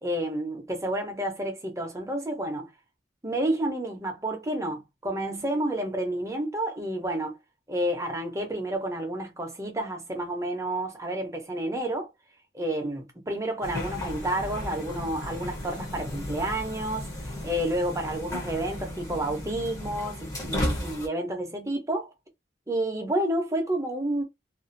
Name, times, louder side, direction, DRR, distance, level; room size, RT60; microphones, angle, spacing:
voice 1, 0.0-2.7 3.2-7.4 7.7-12.1 12.5-17.1 17.4-22.1 22.7-24.2, right 1 dB, 15° right, 0.6 m, -30 dB
sound 1, 13.6-21.1, left 1 dB, 20° left, 0.7 m, -34 dB
2.5 x 2.3 x 2.5 m
head